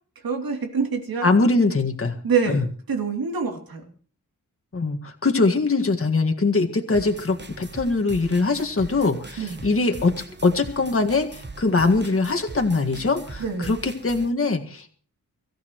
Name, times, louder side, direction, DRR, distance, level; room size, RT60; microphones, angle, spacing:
voice 1, 0.2-1.3 2.2-2.6 2.9-3.8 9.4-9.6 13.4-13.7, right 5 dB, 85° right, 2 dB, 3.2 m, -25 dB
voice 2, 1.2-2.1 2.5-2.7 4.7-10.1 10.4-14.9, left 3 dB, 40° left, 3 dB, 1.9 m, -22 dB
sound 1, 6.9-14.3, right 3 dB, 30° right, 1.4 m, -41 dB
24.5 x 14.0 x 3.1 m, 0.42 s
cardioid pair, 70°, 35 cm